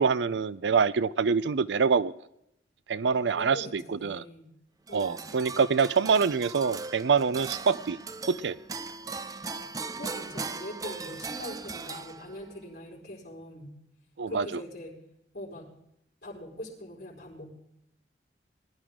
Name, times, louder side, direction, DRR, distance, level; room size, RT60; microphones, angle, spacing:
voice 1, 0.0-2.1 2.9-4.2 4.9-8.0 8.3-8.6 14.2-14.4, right 5 dB, 85° right, 18 dB, 0.5 m, -25 dB
voice 2, 3.0-4.5 4.9-5.2 9.7-13.7 14.3-15.0 15.3-15.7 16.2-17.5, left 1 dB, 60° left, -6 dB, 4.6 m, -42 dB
sound 1, 4.9-12.6, right 4 dB, 20° right, 0.4 m, -39 dB
20.0 x 11.5 x 3.7 m, 0.78 s
head